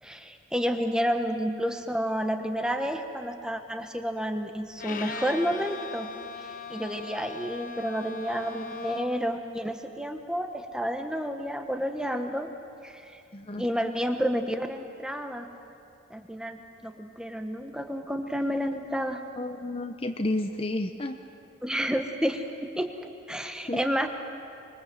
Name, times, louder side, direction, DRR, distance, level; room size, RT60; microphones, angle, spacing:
voice 1, 0.0-6.1 6.4-12.5 12.8-13.2 13.6-15.5 16.1-19.2 21.6-24.1, equal, 5° right, 6 dB, 1.2 m, -30 dB
Bowed string instrument, 4.8-9.3, left 4 dB, 45° left, 1.2 m, -39 dB
voice 2, 13.3-13.7 19.4-21.2 23.7-23.8, left 1 dB, 30° left, 7 dB, 0.7 m, -31 dB
25.0 x 22.5 x 7.7 m, 2.7 s
head